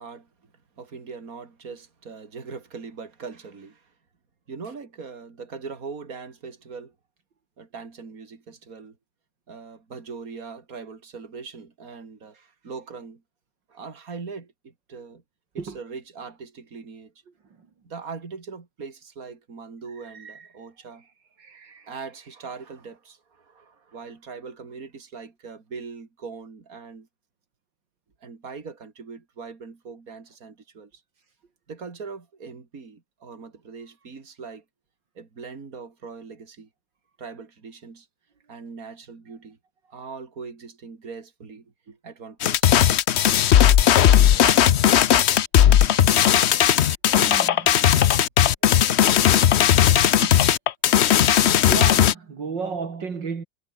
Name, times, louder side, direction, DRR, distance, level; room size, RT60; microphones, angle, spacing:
voice 1, 0.0-3.9 4.5-6.9 7.6-9.0 9.5-13.2 13.7-15.2 15.5-17.1 17.8-27.1 28.2-31.0 31.7-34.6 35.1-36.7 37.2-38.1 38.5-39.6 39.9-42.7 44.3-44.5 48.6-48.7 49.0-50.5, right 5 dB, 45° right, 3.3 m, -41 dB
sound 1, 42.4-52.1, left 10 dB, 85° left, 0.5 m, -17 dB
voice 2, 47.1-47.9 51.7-53.4, right 5 dB, 70° right, 3.1 m, -32 dB
omnidirectional pair, 2.0 m